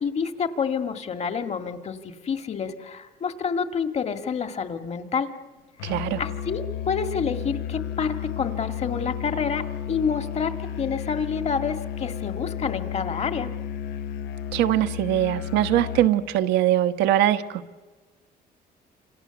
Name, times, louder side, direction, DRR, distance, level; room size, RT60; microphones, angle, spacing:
voice 1, 0.0-5.3 5.8-5.9 6.2-13.5, left 6 dB, 40° left, 8 dB, 1.9 m, -28 dB
Musical instrument, 5.8-16.2, left 10 dB, 85° left, 1.1 m, -33 dB
voice 2, 5.8-6.2 14.5-17.6, right 13 dB, 90° right, 10 dB, 1.2 m, -22 dB
27.5 x 27.0 x 7.1 m, 1.4 s
cardioid pair, 110°, 17 cm